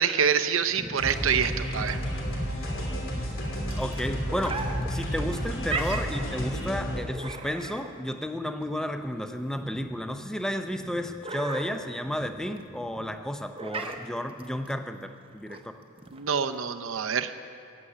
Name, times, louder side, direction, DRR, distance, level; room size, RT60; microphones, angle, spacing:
voice 1, 0.0-2.0 16.1-17.3, right 7 dB, 85° right, 9 dB, 0.7 m, -26 dB
sound 1, 0.6-16.6, right 3 dB, 25° right, 0.8 m, -40 dB
sound 2, 1.0-7.0, equal, 85° left, 3.1 m, -31 dB
voice 2, 3.8-15.8, equal, 5° left, 8 dB, 0.5 m, -32 dB
14.5 x 7.8 x 9.7 m, 2.5 s
head